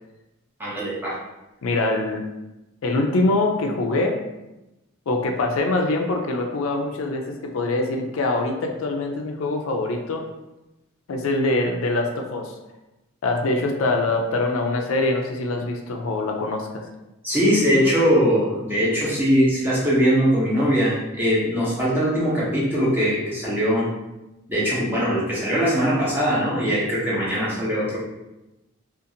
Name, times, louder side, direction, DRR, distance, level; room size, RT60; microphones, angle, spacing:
voice 1, 0.6-1.2 17.2-23.9 24.5-28.0, equal, 10° right, -8 dB, 0.8 m, -21 dB
voice 2, 1.6-2.2 2.8-4.2 5.1-10.2 11.1-12.5 13.2-16.8, left 2 dB, 80° left, 2 dB, 0.4 m, -24 dB
2.5 x 2.4 x 2.7 m, 0.97 s
head